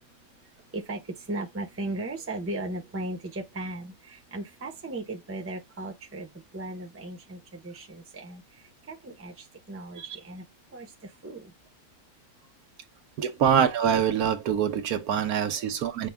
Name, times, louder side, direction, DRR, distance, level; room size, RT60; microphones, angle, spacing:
voice 1, 1.3-6.3 6.5-8.4 8.9-9.3 9.7-10.4 10.7-10.9 11.2-11.5, right 2 dB, 15° right, 0.6 m, -36 dB
voice 2, 13.2-16.1, right 8 dB, 80° right, 1.3 m, -25 dB
5.9 x 2.2 x 3.4 m
omnidirectional pair, 1.5 m